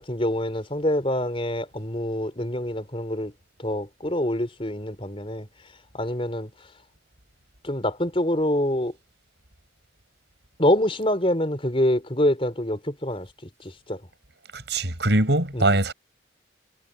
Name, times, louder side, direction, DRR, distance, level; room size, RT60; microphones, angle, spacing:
voice 1, 0.0-3.3 3.6-5.5 5.9-6.5 7.6-8.9 10.6-13.3 13.6-14.0 15.5-15.7, left 1 dB, 30° left, 4.5 m, -25 dB
voice 2, 14.5-15.9, right 1 dB, 65° right, 5.8 m, -22 dB
head